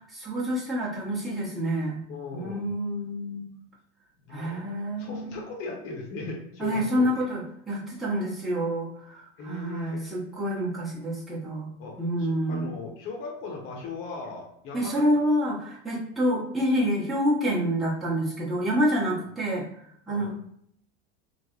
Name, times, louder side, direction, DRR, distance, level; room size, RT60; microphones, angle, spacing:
voice 1, 0.1-2.0 2.3-3.5 4.3-5.4 6.6-11.7 12.0-12.7 14.7-19.7 20.1-20.3, equal, ahead, -8 dB, 0.8 m, -27 dB
voice 2, 2.1-2.7 4.3-4.7 5.0-7.2 9.4-10.1 11.8-15.0 20.1-20.3, left 3 dB, 45° left, -1 dB, 0.8 m, -38 dB
3.2 x 2.0 x 3.7 m, 0.68 s
supercardioid pair, 140°, 30 cm